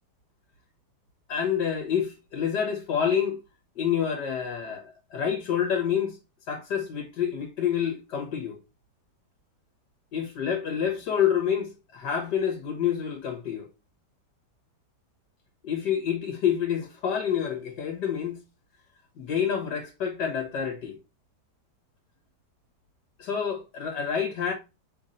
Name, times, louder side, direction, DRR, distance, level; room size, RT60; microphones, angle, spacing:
voice 1, 1.3-3.4 3.8-6.2 6.5-8.6 10.1-13.7 15.6-18.4 19.2-21.0 23.2-24.5, left 8 dB, 80° left, 1.7 m, -28 dB
5.4 x 3.6 x 2.5 m
omnidirectional pair, 1.8 m